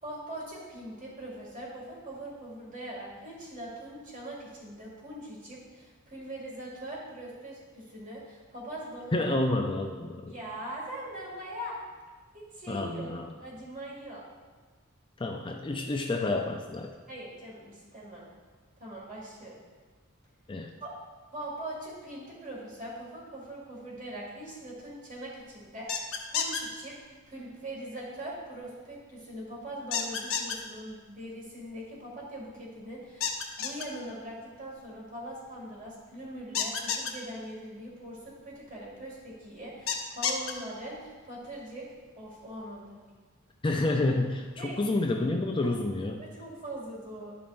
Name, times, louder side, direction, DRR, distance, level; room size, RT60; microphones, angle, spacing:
voice 1, 0.0-9.3 10.3-11.8 12.3-13.1 13.4-14.2 17.1-18.3 18.8-19.6 20.8-20.9 21.3-27.0 27.3-41.9 42.2-43.0 44.6-44.8 45.6-45.7 46.2-47.4, right 1 dB, 40° right, -5 dB, 2.3 m, -41 dB
voice 2, 9.1-10.3 12.7-13.3 15.2-16.9 20.5-20.7 43.6-46.2, left 2 dB, 25° left, 2 dB, 0.4 m, -29 dB
sound 1, 25.9-26.6 29.9-30.6 33.2-33.8 36.5-37.1 39.9-40.5, left 7 dB, 70° left, 0.8 m, -29 dB
11.0 x 5.4 x 2.6 m, 1.4 s
head